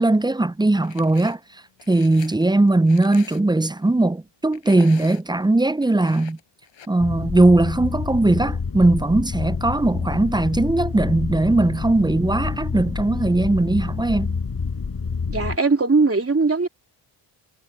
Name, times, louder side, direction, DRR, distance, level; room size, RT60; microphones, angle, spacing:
voice 1, 0.0-1.4 1.9-6.4 6.9-14.4, right 2 dB, 10° right, 0.6 m, -19 dB
sound 1, 0.8-1.4 1.8-3.7 4.5-5.5 5.8-6.9, left 8 dB, 65° left, 5.5 m, -43 dB
sound 2, 7.0-15.6, left 5 dB, 45° left, 6.2 m, -28 dB
voice 2, 15.3-16.7, right 4 dB, 25° right, 3.3 m, -19 dB
supercardioid pair, 50°, 50 cm